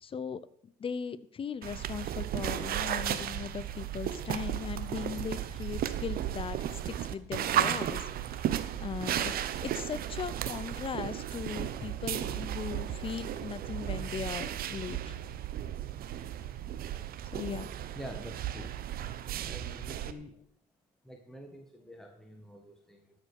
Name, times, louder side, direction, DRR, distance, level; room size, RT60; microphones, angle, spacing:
voice 1, 0.0-6.6 6.8-8.0 8.3-8.4 8.8-15.1 17.3-17.7, left 7 dB, 30° left, 16 dB, 0.7 m, -38 dB
sound 1, 1.6-20.1, right 11 dB, 60° right, 0.8 m, -34 dB
voice 2, 17.9-18.7 19.4-20.3 21.0-23.1, equal, ahead, 2 dB, 1.4 m, -47 dB
12.5 x 5.2 x 6.5 m, 0.69 s
cardioid pair, 110°, 17 cm